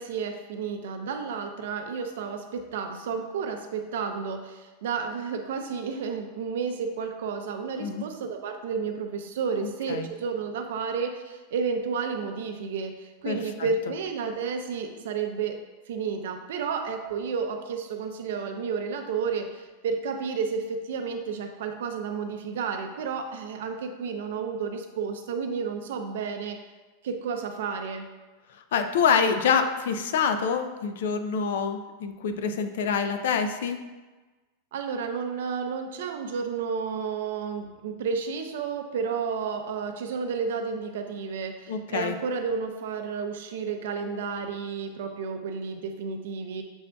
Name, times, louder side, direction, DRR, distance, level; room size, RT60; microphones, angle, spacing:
voice 1, 0.0-15.6 15.9-26.6 27.0-28.1 34.7-46.6, right 5 dB, 75° right, 5 dB, 0.5 m, -31 dB
voice 2, 9.6-10.1 13.2-13.7 28.7-33.8 41.7-42.1, left 6 dB, 75° left, 8 dB, 0.4 m, -26 dB
6.9 x 2.6 x 2.2 m, 1.2 s
supercardioid pair, 165°, 0 cm